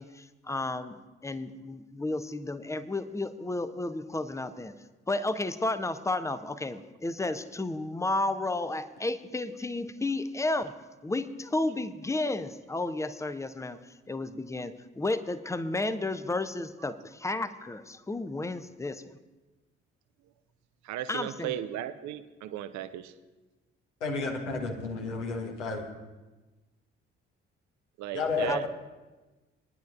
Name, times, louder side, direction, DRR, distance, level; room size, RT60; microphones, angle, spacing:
voice 1, 0.0-4.7 5.1-10.7 11.0-13.8 14.1-19.1 21.1-21.6 24.5-24.7 28.4-28.6, left 2 dB, 10° left, 13 dB, 0.6 m, -32 dB
voice 2, 20.8-23.1 28.0-28.6, right 12 dB, 55° right, 12 dB, 0.7 m, -36 dB
voice 3, 24.0-25.8 28.1-28.7, left 3 dB, 80° left, 2 dB, 1.3 m, -31 dB
21.5 x 10.5 x 2.5 m, 1.2 s
figure-of-eight pair, 40°, 35 cm